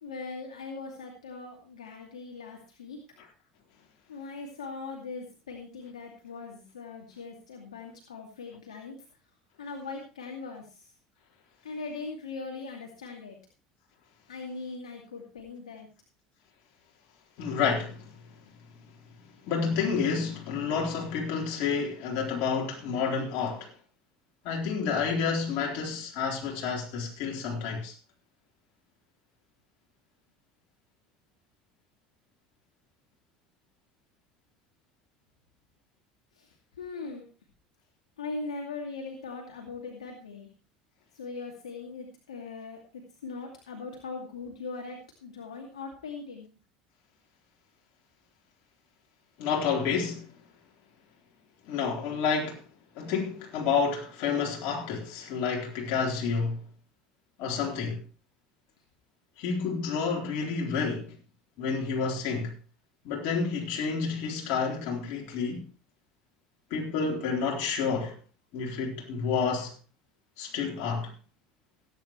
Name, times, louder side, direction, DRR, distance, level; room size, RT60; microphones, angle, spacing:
voice 1, 0.0-3.0 4.1-9.0 9.6-10.6 11.6-13.4 14.3-15.9 36.4-36.5 36.8-37.2 38.2-40.5 41.1-46.5, left 4 dB, 90° left, 2.4 m, -40 dB
voice 2, 17.4-18.2 19.4-23.7 24.4-27.9 49.4-50.3 51.7-52.6 53.0-56.6 57.4-58.0 59.4-61.1 61.6-62.5 63.0-65.7 66.7-68.2 68.5-69.7 70.4-71.1, left 5 dB, 60° left, 3.9 m, -29 dB
17.5 x 9.7 x 3.2 m
hypercardioid pair, 75°, 3 cm